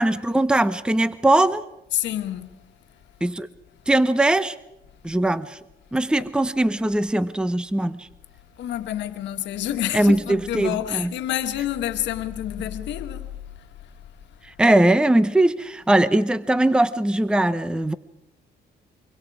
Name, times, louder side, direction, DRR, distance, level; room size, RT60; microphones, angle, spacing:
voice 1, 0.0-1.6 3.2-3.5 3.9-4.5 5.0-5.6 5.9-8.1 9.9-11.1 14.6-17.9, right 1 dB, 5° right, 0.8 m, -20 dB
voice 2, 1.9-2.7 8.6-13.3, left 12 dB, 80° left, 1.6 m, -28 dB
24.5 x 23.5 x 4.8 m
cardioid pair, 115°, 18 cm